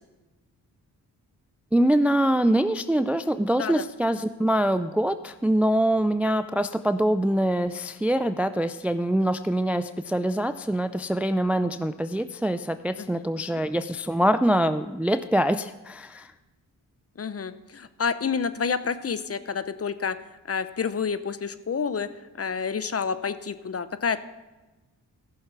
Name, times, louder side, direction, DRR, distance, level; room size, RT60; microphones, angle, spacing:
voice 1, 1.7-16.3, right 1 dB, 5° right, 12 dB, 0.3 m, -24 dB
voice 2, 17.2-20.2 20.5-22.1 22.4-24.2, left 6 dB, 35° left, 13 dB, 0.7 m, -29 dB
14.0 x 6.4 x 5.9 m, 1.1 s
supercardioid pair, 50°, 41 cm